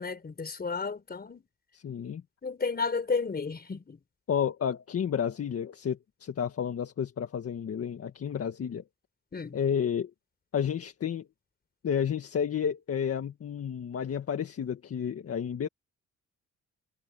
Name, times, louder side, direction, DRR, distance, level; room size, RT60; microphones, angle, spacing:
voice 1, 0.0-1.4 2.4-4.0 9.3-9.6, left 4 dB, 30° left, 4.4 m, -32 dB
voice 2, 1.7-2.2 4.3-8.8 9.5-10.1 10.5-11.3 11.8-15.7, left 8 dB, 50° left, 1.8 m, -31 dB
cardioid pair, 90°, 30 cm